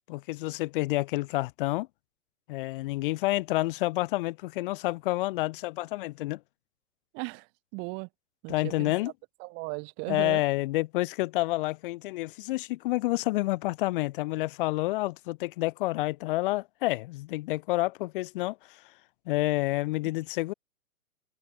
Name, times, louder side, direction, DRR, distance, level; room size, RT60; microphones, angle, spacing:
voice 1, 0.1-1.9 2.5-6.4 8.5-9.1 10.1-18.8 19.3-20.5, left 19 dB, 35° left, 1.2 m, -29 dB
voice 2, 7.1-8.1 8.4-8.9 9.4-10.4, right 33 dB, 25° right, 1.0 m, -37 dB
figure-of-eight pair, 115°, 43 cm